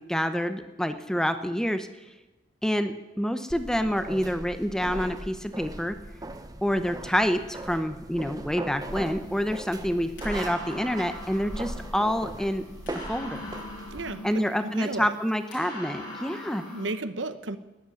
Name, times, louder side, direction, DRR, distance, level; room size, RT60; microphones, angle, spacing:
voice 1, 0.0-1.9 2.6-6.0 6.6-12.6 13.1-13.5 14.2-16.6, equal, 5° left, 9 dB, 0.8 m, -27 dB
sound 1, 3.5-14.2, right 1 dB, 20° right, 1.0 m, -39 dB
sound 2, 8.9-16.9, left 1 dB, 80° left, 7.5 m, -42 dB
voice 2, 13.9-15.2 16.7-17.6, right 2 dB, 75° right, 11 dB, 1.1 m, -34 dB
14.0 x 10.5 x 9.6 m, 1.1 s
head